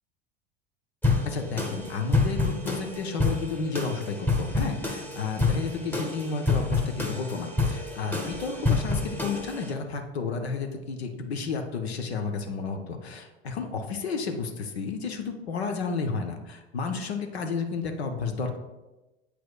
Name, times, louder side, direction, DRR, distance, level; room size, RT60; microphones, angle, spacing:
sound 1, 1.0-9.7, left 3 dB, 5° left, 1.0 m, -28 dB
voice 1, 1.2-18.6, left 4 dB, 70° left, 5 dB, 0.8 m, -32 dB
8.2 x 6.0 x 2.3 m, 1.1 s
figure-of-eight pair, 75°, 33 cm